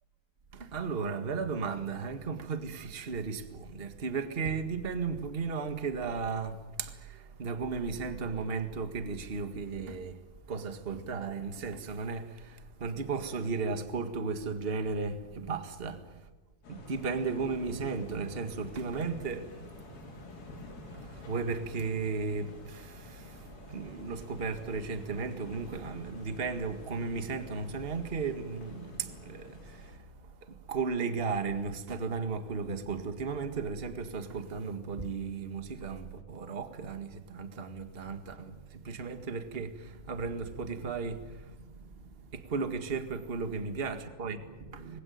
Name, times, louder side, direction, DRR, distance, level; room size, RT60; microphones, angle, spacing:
voice 1, 0.5-16.0 16.7-20.3 20.9-45.0, right 4 dB, 40° right, 0.8 m, -35 dB
sound 1, 16.6-30.0, left 2 dB, 80° left, 6.2 m, -49 dB
26.5 x 21.5 x 9.4 m
omnidirectional pair, 4.1 m